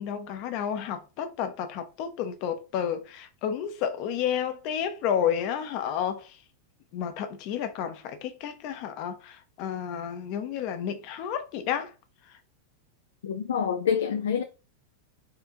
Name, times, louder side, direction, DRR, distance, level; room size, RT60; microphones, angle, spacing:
voice 1, 0.0-6.4 6.9-11.9, left 8 dB, 45° left, 0.7 m, -31 dB
voice 2, 13.2-14.4, left 7 dB, 65° left, 0.4 m, -26 dB
4.4 x 2.7 x 3.6 m
figure-of-eight pair, 90°, 0 cm